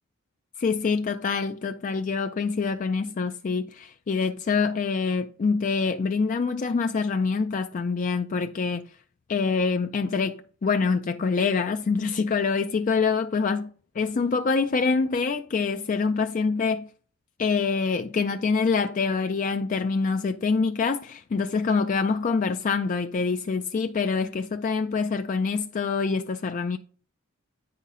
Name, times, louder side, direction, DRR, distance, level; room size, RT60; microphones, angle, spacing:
voice 1, 0.6-8.9 9.3-13.6 14.0-16.9 17.4-26.8, left 4 dB, 40° left, 0.4 m, -25 dB
9.1 x 5.7 x 3.7 m
head